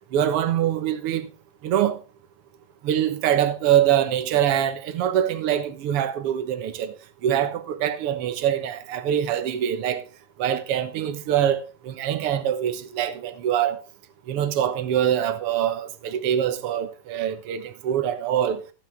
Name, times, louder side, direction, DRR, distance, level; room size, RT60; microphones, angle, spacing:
voice 1, 0.1-1.3 1.6-2.0 2.8-6.9 7.2-10.0 10.4-13.8 14.3-18.6, right 10 dB, 65° right, 1.5 m, -24 dB
15.0 x 10.0 x 3.3 m
omnidirectional pair, 4.0 m